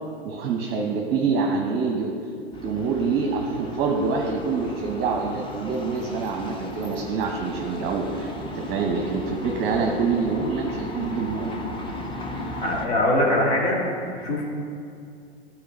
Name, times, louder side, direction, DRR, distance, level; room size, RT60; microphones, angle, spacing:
voice 1, 0.2-2.1 2.6-11.5, right 4 dB, 35° right, 2 dB, 0.8 m, -26 dB
sound 1, 2.5-12.9, left 2 dB, 15° left, 0.7 m, -36 dB
voice 2, 12.6-13.8 14.1-14.5, left 1 dB, 65° left, -3 dB, 2.1 m, -22 dB
12.5 x 4.3 x 4.4 m, 2.3 s
figure-of-eight pair, 95°, 32 cm